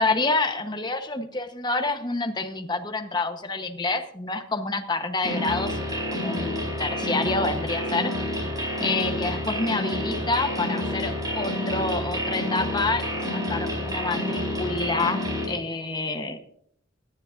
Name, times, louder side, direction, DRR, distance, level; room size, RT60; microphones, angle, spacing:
voice 1, 0.0-8.5 8.8-15.2 15.5-16.4, left 3 dB, 20° left, 6 dB, 1.0 m, -28 dB
sound 1, 5.2-15.5, left 1 dB, 20° right, 4.3 m, -29 dB
19.0 x 10.5 x 2.6 m, 0.67 s
head